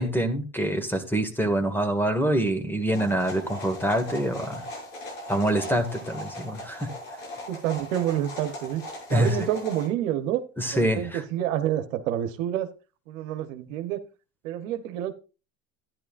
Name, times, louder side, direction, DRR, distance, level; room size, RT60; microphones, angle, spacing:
voice 1, 0.0-4.6 5.3-6.9 9.1-9.5 10.6-11.2, right 1 dB, 5° left, 1.8 m, -25 dB
sound 1, 2.9-9.9, left 1 dB, 90° left, 6.6 m, -39 dB
voice 2, 7.5-8.8 9.1-10.4 10.7-12.7 13.1-14.0 14.4-15.1, right 11 dB, 80° right, 1.1 m, -28 dB
12.5 x 10.5 x 2.5 m
supercardioid pair, 95°, 39 cm